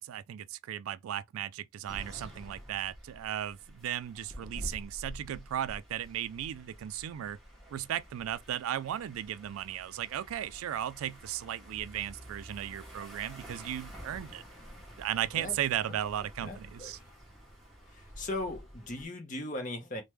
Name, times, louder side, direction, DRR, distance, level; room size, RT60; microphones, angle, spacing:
voice 1, 0.0-7.4 7.7-14.4 15.0-17.0, right 11 dB, 85° right, 0.3 m, -36 dB
sound 1, 1.9-19.0, equal, ahead, 0.9 m, -49 dB
voice 2, 16.4-17.0 17.9-20.0, left 2 dB, 35° left, 0.7 m, -38 dB
3.3 x 2.2 x 3.0 m
head